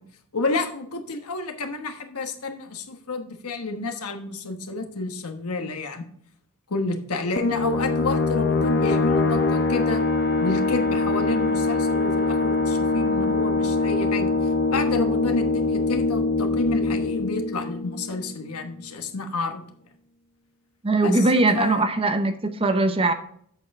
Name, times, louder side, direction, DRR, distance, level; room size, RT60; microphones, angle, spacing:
voice 1, 0.3-6.1 6.7-10.0 10.4-14.3 14.7-19.6 21.0-21.9, left 3 dB, 80° left, 6 dB, 1.2 m, -30 dB
sound 1, 7.4-18.6, left 3 dB, 45° left, 0.6 m, -23 dB
voice 2, 20.8-23.1, right 2 dB, 25° right, 8 dB, 0.7 m, -21 dB
7.9 x 6.8 x 3.6 m, 0.65 s
head